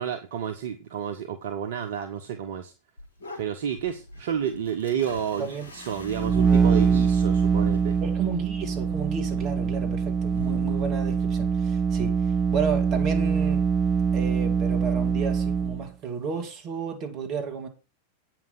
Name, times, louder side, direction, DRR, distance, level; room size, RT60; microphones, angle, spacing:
voice 1, 0.0-2.7 3.4-8.0, right 8 dB, 55° right, 0.9 m, -30 dB
sound 1, 3.0-11.2, left 2 dB, 65° left, 2.8 m, -48 dB
voice 2, 5.4-5.7 8.0-12.1 12.5-13.6 14.1-17.7, right 6 dB, 35° right, 2.6 m, -32 dB
sound 2, 6.0-15.9, right 5 dB, 15° right, 0.6 m, -24 dB
8.7 x 6.0 x 6.1 m
figure-of-eight pair, 90°, 0 cm